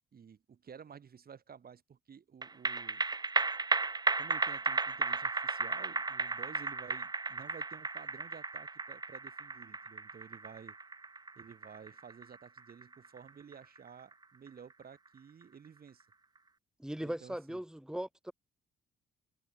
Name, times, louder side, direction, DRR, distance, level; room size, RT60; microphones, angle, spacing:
voice 1, 0.1-3.3 4.2-10.8 11.4-16.1 17.0-17.6, right 7 dB, 50° right, 6.4 m, -53 dB
sound 1, 2.4-15.1 15.4-15.5, right 3 dB, 20° right, 0.9 m, -35 dB
voice 2, 16.8-18.3, equal, 5° right, 3.2 m, -39 dB
cardioid pair, 90°, 20 cm